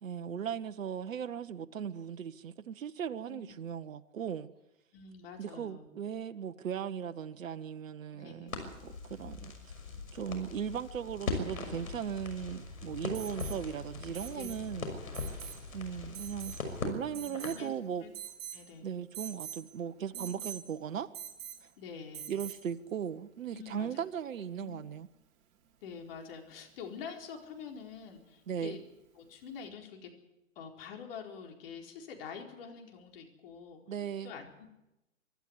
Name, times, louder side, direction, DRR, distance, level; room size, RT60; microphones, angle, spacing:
voice 1, 0.0-4.5 5.4-9.5 10.1-14.9 15.7-16.6 16.8-18.0 18.8-21.1 21.6-21.7 22.3-25.1 28.5-28.8 33.9-34.3, right 8 dB, 75° right, 1.1 m, -38 dB
voice 2, 4.9-5.9 8.1-8.6 14.3-15.0 17.1-17.7 18.0-18.1 18.5-18.9 20.1-20.4 21.8-22.3 23.5-24.0 24.5-24.8 25.8-28.8 29.1-30.1 30.5-34.7, left 6 dB, 45° left, 4.5 m, -46 dB
Crackle, 8.5-17.7, left 3 dB, 85° left, 6.2 m, -40 dB
Alarm, 13.1-13.6 14.1-14.6 15.1-15.6 16.1-16.6 17.1-17.7 18.1-18.6 19.1-19.6 20.1-20.6 21.1-21.6 22.1-22.6 24.4-24.5, right 10 dB, 30° right, 3.3 m, -44 dB
25.0 x 12.0 x 9.8 m
hypercardioid pair, 135°, 40 cm